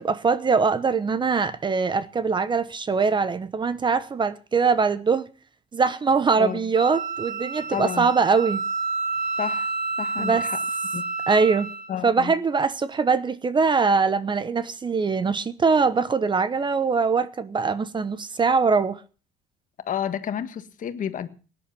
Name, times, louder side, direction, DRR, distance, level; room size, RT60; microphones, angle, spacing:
voice 1, 0.0-5.3 5.7-8.6 10.2-10.5 11.3-11.7 12.0-19.0, right 5 dB, 30° right, 0.9 m, -22 dB
Wind instrument woodwind instrument, 6.7-11.9, right 4 dB, 55° right, 2.7 m, -29 dB
voice 2, 7.7-8.1 9.4-9.7 10.0-10.6 10.9-11.0 11.9-12.3 19.8-21.3, left 9 dB, 50° left, 1.6 m, -30 dB
17.5 x 10.0 x 5.8 m
cardioid pair, 110°, 17 cm